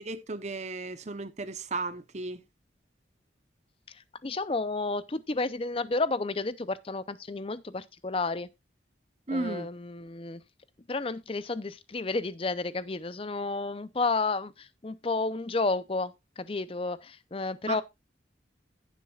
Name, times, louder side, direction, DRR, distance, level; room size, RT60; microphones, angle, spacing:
voice 1, 0.0-2.4 9.3-9.7 17.7-17.8, right 3 dB, 35° right, 0.8 m, -34 dB
voice 2, 3.9-8.5 9.3-10.4 10.9-17.8, left 3 dB, 30° left, 0.6 m, -31 dB
15.5 x 7.3 x 2.4 m
head